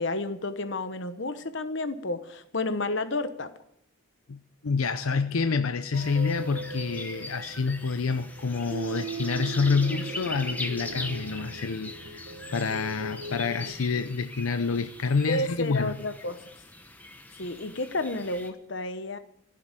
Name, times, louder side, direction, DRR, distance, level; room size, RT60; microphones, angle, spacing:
voice 1, 0.0-3.5 15.3-16.4 17.4-19.2, left 2 dB, 55° left, 1.1 m, -31 dB
voice 2, 4.3-12.2 12.5-16.0, left 4 dB, 85° left, 0.6 m, -28 dB
sound 1, 5.9-18.5, left 2 dB, 10° left, 1.0 m, -41 dB
sound 2, 5.9-13.7, right 3 dB, 60° right, 1.5 m, -39 dB
15.0 x 7.7 x 8.8 m
head